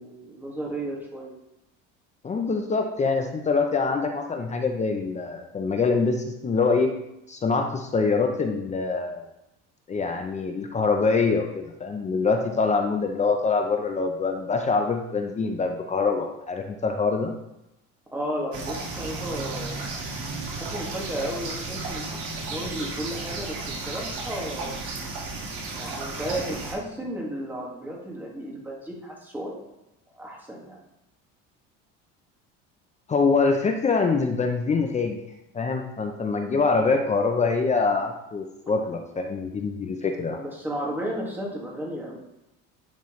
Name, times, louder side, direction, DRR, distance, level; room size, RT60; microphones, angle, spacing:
voice 1, 0.0-1.4 18.1-19.8 20.6-22.2 22.5-24.7 25.8-29.7 30.1-30.8 38.7-38.8 40.3-42.2, right 1 dB, 5° right, -3 dB, 2.0 m, -33 dB
voice 2, 2.2-6.9 7.3-9.3 9.9-17.3 33.1-35.2 35.5-40.4, left 4 dB, 25° left, 4 dB, 0.7 m, -24 dB
sound 1, 18.5-26.7, right 3 dB, 75° right, 2.2 m, -34 dB
10.5 x 4.3 x 3.2 m, 0.89 s
cardioid pair, 115°, 30 cm